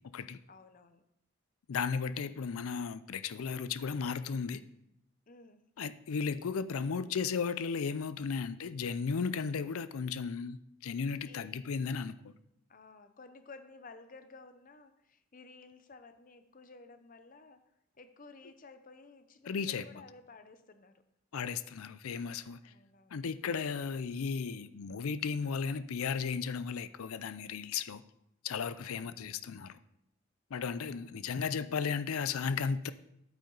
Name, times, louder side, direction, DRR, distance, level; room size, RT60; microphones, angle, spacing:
voice 1, 0.5-1.0 5.3-5.7 11.2-11.5 12.7-17.6 17.9-21.0 22.6-23.2 28.8-29.4 30.8-31.2, left 3 dB, 40° left, 0.6 m, -54 dB
voice 2, 1.7-4.6 5.8-12.3 19.5-19.8 21.3-22.7 23.1-28.0 28.4-29.8 30.5-32.9, left 5 dB, 80° left, 0.5 m, -35 dB
8.6 x 8.2 x 3.9 m
head